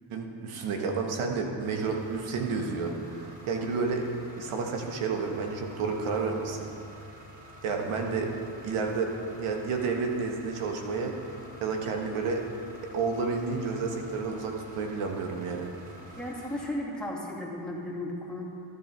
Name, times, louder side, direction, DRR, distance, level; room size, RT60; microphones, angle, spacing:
voice 1, 0.1-4.1 4.4-6.7 7.6-8.3 8.6-9.1 9.4-11.1 11.6-12.4 12.9-15.7, right 4 dB, 75° right, 2 dB, 1.6 m, -30 dB
sound 1, 1.6-16.7, equal, 15° right, 3.2 m, -50 dB
voice 2, 16.2-18.5, left 1 dB, ahead, -4 dB, 2.4 m, -35 dB
13.5 x 9.8 x 4.6 m, 2.6 s
cardioid pair, 85°, 50 cm